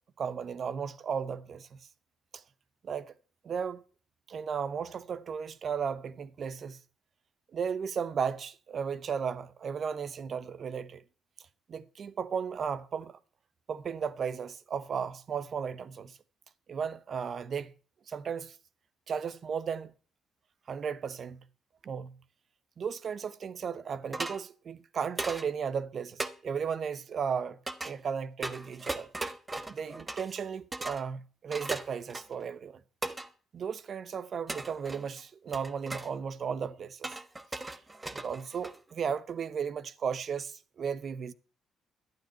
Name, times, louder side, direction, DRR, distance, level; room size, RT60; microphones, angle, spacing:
voice 1, 0.2-1.8 2.3-2.4 2.8-3.1 3.4-3.8 4.3-6.8 7.5-11.0 11.7-13.2 13.7-16.2 16.7-17.7 18.1-18.6 19.1-19.9 20.7-21.4 21.8-22.2 22.8-29.1 29.7-32.8 33.5-37.1 38.1-41.3, right 6 dB, 50° right, 0.9 m, -35 dB
sound 1, 24.1-24.4 25.2-25.5 26.2-26.3 27.7-27.9 28.4-30.4 30.7-31.0 31.5-32.4 33.0-33.3 34.5-35.2 35.5-36.1 37.0-38.9, right 2 dB, 20° right, 1.1 m, -38 dB
12.0 x 9.0 x 5.7 m
cardioid pair, 90°, 0 cm